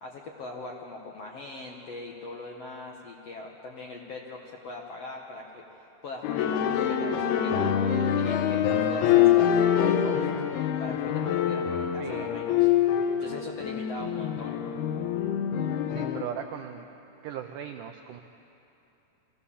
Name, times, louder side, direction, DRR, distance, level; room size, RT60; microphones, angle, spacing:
voice 1, 0.0-10.3 10.8-12.7 13.2-14.5, left 3 dB, 65° left, 0 dB, 1.6 m, -41 dB
sound 1, 6.2-16.2, left 9 dB, 90° left, 2.9 m, -25 dB
voice 2, 12.0-12.4 16.0-16.9 17.2-18.2, right 9 dB, 85° right, 5 dB, 1.8 m, -38 dB
24.0 x 16.0 x 7.1 m, 2.9 s
omnidirectional pair, 4.4 m